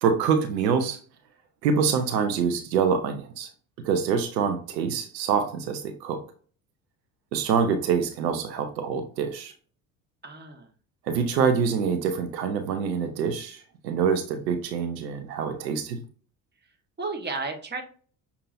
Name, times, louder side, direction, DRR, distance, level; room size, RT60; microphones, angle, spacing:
voice 1, 0.0-1.0 1.6-3.5 3.8-6.2 7.3-9.5 11.1-16.0, right 6 dB, 80° right, 0.8 m, -25 dB
voice 2, 10.2-10.7 17.0-17.8, right 3 dB, 20° right, 1.3 m, -33 dB
6.9 x 2.8 x 2.6 m
hypercardioid pair, 60°, 49 cm